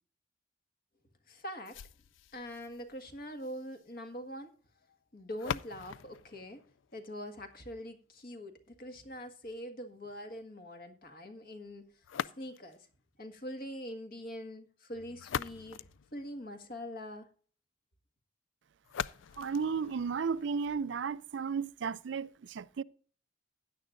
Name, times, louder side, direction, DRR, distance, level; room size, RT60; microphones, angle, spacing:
voice 1, 1.3-1.8 2.3-4.5 5.1-6.6 6.9-11.9 12.4-12.9 13.2-15.8 16.1-17.3, equal, 50° left, 1.7 m, -43 dB
sound 1, 1.7-7.6 12.0-12.9 14.9-16.8 18.8-20.8, left 8 dB, 75° left, 0.4 m, -43 dB
voice 2, 19.4-22.8, right 5 dB, 60° right, 0.4 m, -34 dB
16.0 x 10.0 x 2.5 m
head